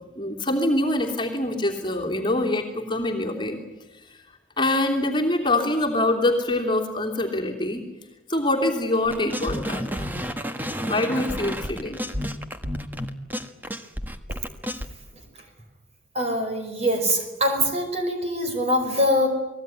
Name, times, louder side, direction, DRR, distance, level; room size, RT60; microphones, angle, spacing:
voice 1, 0.2-3.6 4.1-4.2 4.6-7.8 8.3-10.1 10.9-12.0, left 1 dB, 25° left, 1 dB, 3.0 m, -24 dB
sound 1, 9.1-14.9, equal, 10° right, 1.4 m, -31 dB
voice 2, 16.1-19.3, equal, 35° right, 4 dB, 5.2 m, -23 dB
29.5 x 20.0 x 9.8 m, 1.1 s
head